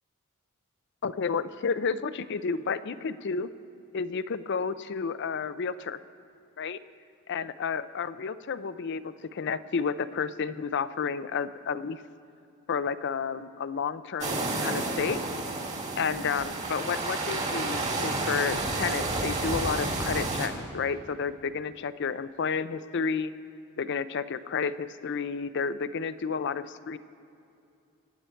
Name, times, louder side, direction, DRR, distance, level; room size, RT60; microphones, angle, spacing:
voice 1, 1.0-3.5 3.9-6.0 6.6-6.8 7.3-12.0 12.7-15.2 16.0-23.3 23.8-27.0, left 5 dB, 60° left, 14 dB, 0.5 m, -31 dB
sound 1, 14.2-20.5, right 2 dB, 35° right, 1.9 m, -30 dB
24.5 x 9.1 x 4.5 m, 2.6 s
head